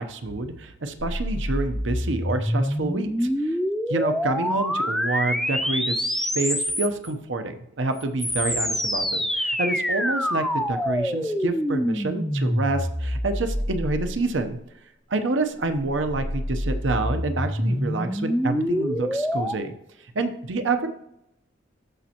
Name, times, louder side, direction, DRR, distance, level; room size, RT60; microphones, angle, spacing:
voice 1, 0.0-3.6 3.9-14.6 15.1-19.7 20.1-20.9, right 2 dB, 90° right, 8 dB, 0.8 m, -28 dB
sound 1, 1.0-7.1 8.0-14.6 15.6-19.6, equal, ahead, 0.4 m, -26 dB
13.5 x 5.2 x 2.9 m, 0.81 s
head